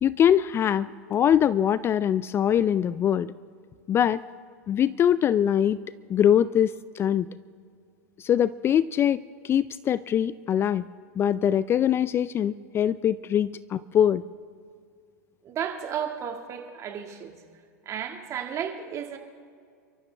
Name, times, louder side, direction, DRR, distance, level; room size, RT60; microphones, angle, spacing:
voice 1, 0.0-3.3 3.9-4.2 4.7-5.8 6.1-7.3 8.2-10.9 11.2-14.2, left 9 dB, 25° left, 17 dB, 0.4 m, -23 dB
voice 2, 15.4-17.4 17.9-19.2, right 8 dB, 35° right, 4 dB, 1.9 m, -33 dB
29.5 x 13.5 x 3.4 m, 2.1 s
hypercardioid pair, 110°, 9 cm